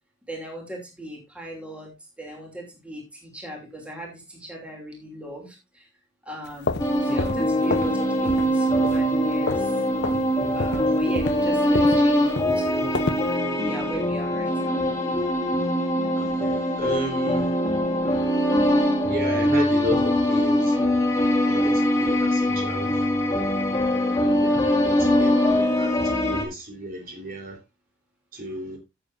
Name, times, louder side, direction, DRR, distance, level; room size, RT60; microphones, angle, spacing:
voice 1, 0.3-1.9 2.2-5.9 6.2-9.7 10.5-12.9 13.5-14.8, right 1 dB, 5° right, 2.9 m, -38 dB
sound 1, 6.4-8.0 8.2-8.6 8.8-9.7 10.0-10.2 10.6-13.3, left 3 dB, 55° left, 0.8 m, -29 dB
sound 2, 6.8-26.4, equal, 15° left, 2.5 m, -22 dB
voice 2, 16.2-17.5 19.1-20.8 21.4-23.1 23.9-27.6 28.3-28.8, left 1 dB, 45° right, 3.7 m, -33 dB
16.0 x 7.3 x 2.6 m
head